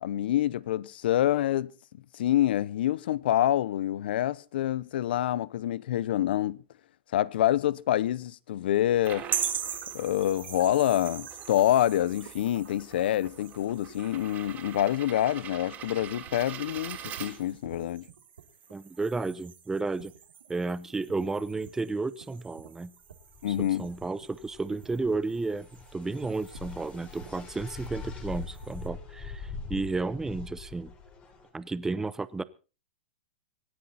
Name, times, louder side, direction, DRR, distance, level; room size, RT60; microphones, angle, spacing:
voice 1, 0.0-1.7 2.1-6.6 7.1-9.2 9.9-18.0 23.4-23.9, left 12 dB, 70° left, 0.8 m, -27 dB
sound 1, 8.8-17.8, right 10 dB, 30° right, 3.5 m, -44 dB
sound 2, 9.3-28.9, right 8 dB, 90° right, 3.6 m, -42 dB
voice 2, 18.7-20.1 20.5-22.9 23.5-25.7 25.9-30.9 31.5-32.4, right 3 dB, 10° right, 0.8 m, -32 dB
sound 3, 23.1-31.5, left 4 dB, 25° left, 3.9 m, -43 dB
25.5 x 9.6 x 4.2 m
hypercardioid pair, 135°, 6 cm